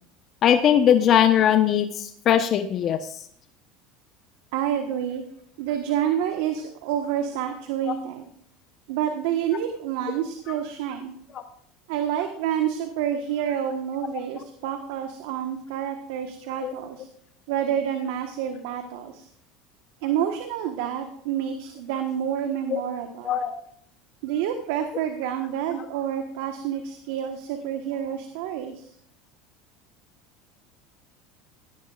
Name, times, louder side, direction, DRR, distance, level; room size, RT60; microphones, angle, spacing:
voice 1, 0.4-3.1 16.6-16.7 22.7-22.8 23.2-23.5, left 9 dB, 45° left, 7 dB, 1.0 m, -20 dB
voice 2, 4.5-5.2 5.6-8.3 8.9-11.1 11.9-17.1 17.5-19.3 20.0-23.4 24.2-28.9, right 9 dB, 75° right, 6 dB, 1.4 m, -28 dB
17.5 x 14.0 x 2.5 m, 0.66 s
supercardioid pair, 95°, 0 cm